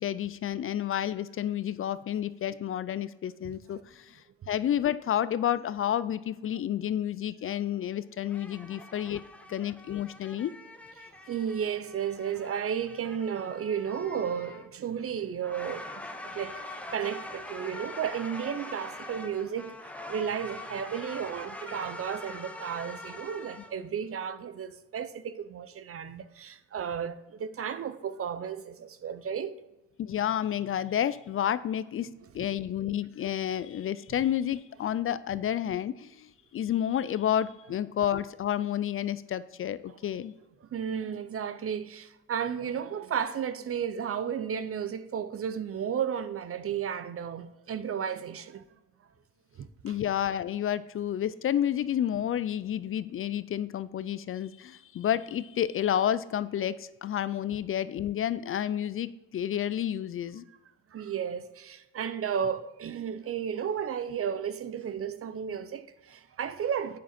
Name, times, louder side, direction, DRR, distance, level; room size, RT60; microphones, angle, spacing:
voice 1, 0.0-4.1 4.5-9.2 9.5-10.5 30.0-36.3 36.5-40.3 49.8-60.4, left 10 dB, 45° left, 0.4 m, -30 dB
sound 1, 8.3-23.8, left 1 dB, 5° left, 0.9 m, -44 dB
voice 2, 11.3-19.7 20.1-29.5 32.0-32.1 40.7-48.6 49.6-50.0 60.9-67.0, right 8 dB, 50° right, 0.7 m, -33 dB
8.3 x 6.4 x 4.3 m
cardioid pair, 90°, 30 cm